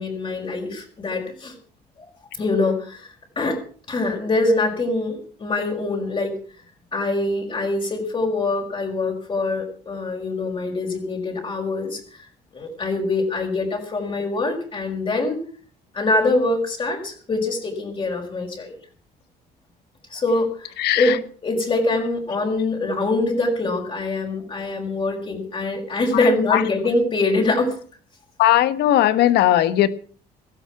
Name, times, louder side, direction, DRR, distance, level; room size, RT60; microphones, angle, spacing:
voice 1, 0.0-1.5 2.3-3.6 3.9-6.3 6.9-12.0 12.5-15.4 15.9-18.8 20.1-21.1 21.4-27.7, left 2 dB, 30° left, 0 dB, 5.6 m, -24 dB
voice 2, 20.8-21.2 26.1-26.6 28.4-29.9, left 13 dB, 80° left, 14 dB, 1.5 m, -18 dB
16.5 x 13.5 x 6.0 m, 0.44 s
cardioid pair, 110°, 17 cm